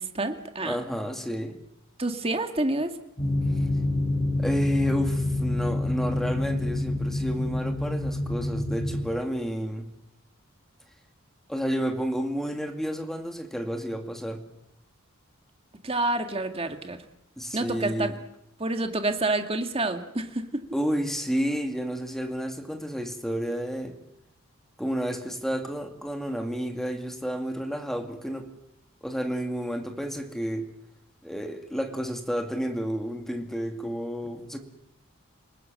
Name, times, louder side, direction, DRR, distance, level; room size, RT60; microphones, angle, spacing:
voice 1, 0.0-0.8 2.0-2.9 15.8-17.0 17.5-18.1 18.6-20.6, right 2 dB, 25° right, 6 dB, 1.9 m, -28 dB
voice 2, 0.6-1.6 3.6-3.7 4.4-9.9 11.5-14.4 17.4-18.1 20.7-24.0 24.8-28.5 29.0-30.7 31.2-34.6, equal, ahead, 4 dB, 2.3 m, -31 dB
sound 1, 3.2-9.1, left 2 dB, 30° left, 6.9 m, -27 dB
28.0 x 19.0 x 7.7 m, 0.85 s
head